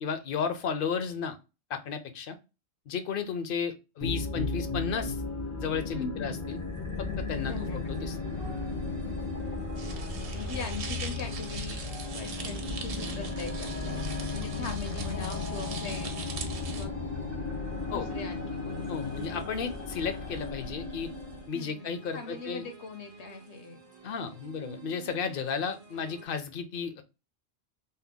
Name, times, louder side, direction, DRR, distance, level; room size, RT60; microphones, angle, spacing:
voice 1, 0.0-1.4 1.7-2.4 2.9-5.2 5.6-6.6 7.0-8.2 17.9-18.1 18.9-21.1 21.5-22.6 24.0-27.0, left 6 dB, 60° left, 8 dB, 0.7 m, -33 dB
sound 1, 4.0-21.5, left 3 dB, 20° left, 0.5 m, -35 dB
voice 2, 5.9-6.4 7.5-7.8 9.9-10.1 10.3-11.8 12.1-16.2 16.7-16.9 17.9-18.9 20.1-20.2 21.5-23.8, left 3 dB, 80° left, 5 dB, 1.1 m, -41 dB
sound 2, 6.5-26.3, right 6 dB, 35° right, 0.5 m, -50 dB
sound 3, 9.8-16.9, right 5 dB, 65° right, 0.8 m, -41 dB
2.8 x 2.2 x 3.4 m, 0.28 s
omnidirectional pair, 1.1 m